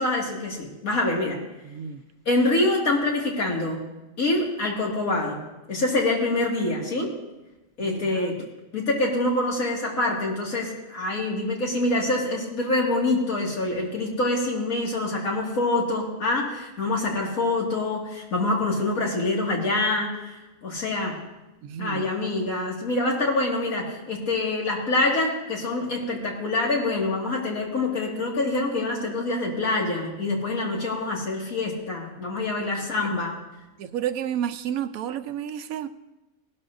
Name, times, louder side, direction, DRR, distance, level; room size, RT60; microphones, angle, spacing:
voice 1, 0.0-1.4 2.3-3.8 4.2-5.4 5.7-7.1 7.8-8.4 8.7-21.2 21.8-33.4, left 2 dB, 85° left, -2 dB, 2.5 m, -25 dB
voice 2, 1.7-2.0 7.8-8.3 21.6-22.0 32.6-32.8 33.8-35.9, right 9 dB, 90° right, 11 dB, 1.1 m, -31 dB
18.5 x 12.0 x 2.6 m, 1.0 s
omnidirectional pair, 1.4 m